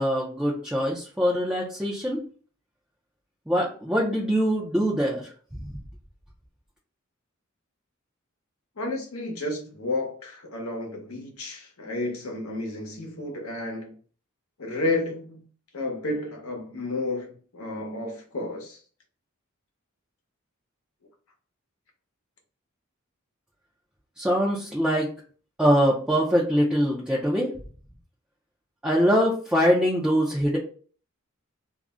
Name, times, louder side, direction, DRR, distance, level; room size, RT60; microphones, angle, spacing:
voice 1, 0.0-2.2 3.5-5.3 24.2-25.1 25.6-27.5 28.8-30.6, equal, 5° right, 0.4 m, -23 dB
voice 2, 8.8-14.0 14.6-15.4 15.7-18.8, left 2 dB, 80° left, 0.8 m, -31 dB
2.4 x 2.0 x 3.5 m
head